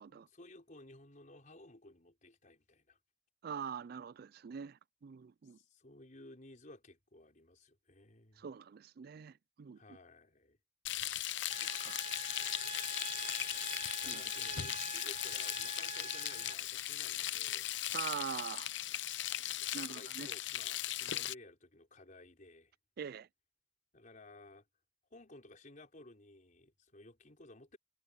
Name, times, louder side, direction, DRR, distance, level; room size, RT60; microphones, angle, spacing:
voice 1, 0.1-3.0 5.4-8.5 9.7-10.6 14.0-17.7 19.5-22.7 23.9-24.7 25.1-27.8, left 2 dB, 45° left, 4.6 m, -56 dB
voice 2, 3.4-5.6 8.4-9.8 11.6-12.0 14.1-14.2 17.9-18.7 19.7-20.3 23.0-23.3, right 7 dB, 55° right, 0.4 m, -44 dB
Frying (food), 10.9-21.3, left 13 dB, 75° left, 0.7 m, -38 dB
sound 1, 11.5-16.5, right 5 dB, 35° right, 1.7 m, -46 dB
head